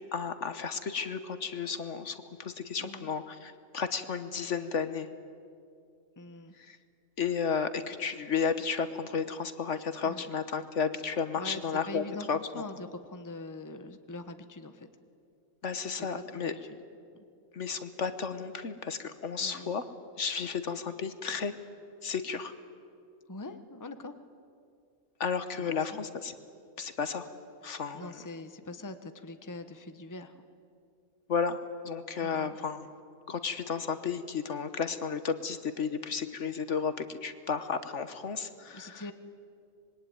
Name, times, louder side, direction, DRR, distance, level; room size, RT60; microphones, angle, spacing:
voice 1, 0.1-5.1 6.6-6.8 7.2-12.4 15.6-16.5 17.5-19.9 20.2-21.5 22.0-22.5 25.2-26.3 26.8-27.3 27.6-28.2 31.3-32.9 33.3-39.0, left 6 dB, 60° left, 11 dB, 1.4 m, -33 dB
voice 2, 6.2-6.5 10.0-10.3 11.4-14.9 15.9-16.8 17.1-17.2 19.4-19.7 23.3-24.2 25.6-26.0 27.9-30.4 32.2-32.6 38.7-39.1, left 2 dB, 15° left, 9 dB, 1.1 m, -43 dB
26.0 x 22.0 x 9.6 m, 2.4 s
omnidirectional pair, 1.4 m